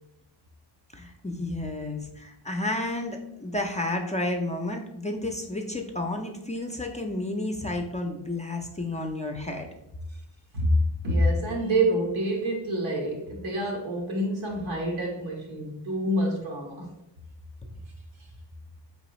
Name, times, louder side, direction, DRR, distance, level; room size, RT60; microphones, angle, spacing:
voice 1, 0.9-9.7, left 2 dB, 15° left, 2 dB, 0.4 m, -31 dB
voice 2, 10.5-16.9, equal, 85° right, 0 dB, 1.2 m, -27 dB
3.9 x 3.4 x 3.0 m, 0.84 s
cardioid pair, 65°, 45 cm